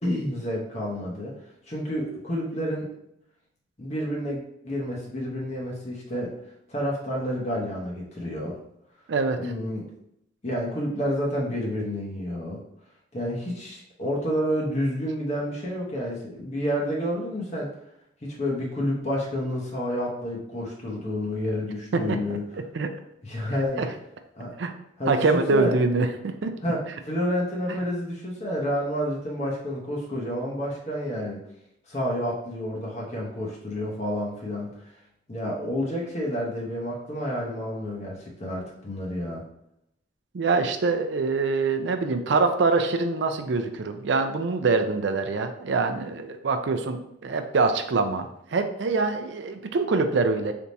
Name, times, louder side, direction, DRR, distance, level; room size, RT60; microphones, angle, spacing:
voice 1, 0.0-1.3 1.7-2.9 3.8-6.4 6.7-8.6 9.4-9.9 10.4-12.6 13.1-17.7 18.2-22.4 23.2-23.8 24.3-24.5 25.0-25.7 26.6-31.4 31.9-34.7 35.3-39.4, equal, 35° left, -3 dB, 0.9 m, -29 dB
voice 2, 9.1-9.5 21.9-22.2 22.7-22.9 23.8-23.9 24.6-24.7 25.1-26.5 40.3-50.5, right 4 dB, 65° right, 7 dB, 0.4 m, -24 dB
3.4 x 2.8 x 3.9 m, 0.77 s
head